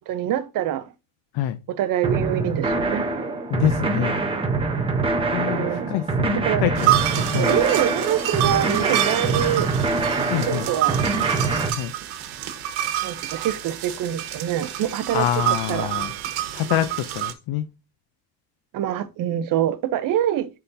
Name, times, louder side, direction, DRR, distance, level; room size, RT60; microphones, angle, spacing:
voice 1, 0.1-0.9 1.7-3.0 5.5-5.9 6.5-6.6 7.3-9.7 10.3-11.0 13.0-15.9 18.7-20.5, right 11 dB, 45° right, 0.7 m, -25 dB
sound 1, 2.0-11.7, right 3 dB, 10° right, 0.8 m, -24 dB
voice 2, 3.5-4.2 5.3-7.5 10.3-10.6 11.8-11.9 15.1-16.1 16.5-17.6, left 12 dB, 55° left, 0.5 m, -26 dB
sound 2, 6.8-17.3, right 12 dB, 90° right, 1.3 m, -27 dB
9.8 x 3.8 x 2.6 m
cardioid pair, 170°, 47 cm